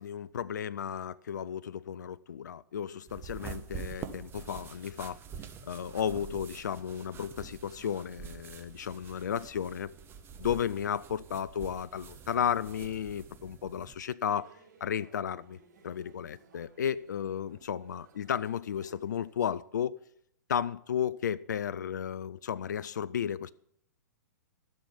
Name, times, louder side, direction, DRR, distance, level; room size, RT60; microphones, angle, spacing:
voice 1, 0.0-5.2 5.7-9.9 10.4-14.5 14.8-15.6 15.8-20.0 20.5-23.5, left 8 dB, 70° left, 0.4 m, -33 dB
sound 1, 3.1-13.9, right 7 dB, 20° right, 1.5 m, -46 dB
sound 2, 14.3-19.6, right 3 dB, 60° right, 3.9 m, -60 dB
12.5 x 6.6 x 9.7 m
figure-of-eight pair, 110°, 10 cm